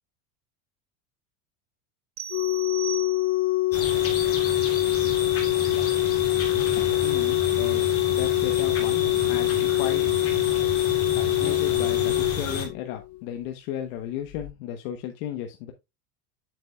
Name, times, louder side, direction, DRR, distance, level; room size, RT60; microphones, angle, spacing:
sound 1, 2.2-3.7, right 9 dB, 25° right, 0.3 m, -38 dB
Organ, 2.3-13.2 14.3-14.5, left 17 dB, 50° left, 0.5 m, -24 dB
sound 2, 3.7-12.7, left 4 dB, 30° left, 2.6 m, -31 dB
voice 1, 7.0-10.0 11.1-15.7, left 11 dB, 70° left, 5 dB, 1.1 m, -35 dB
7.7 x 7.5 x 2.3 m, 0.22 s
supercardioid pair, 125°, 44 cm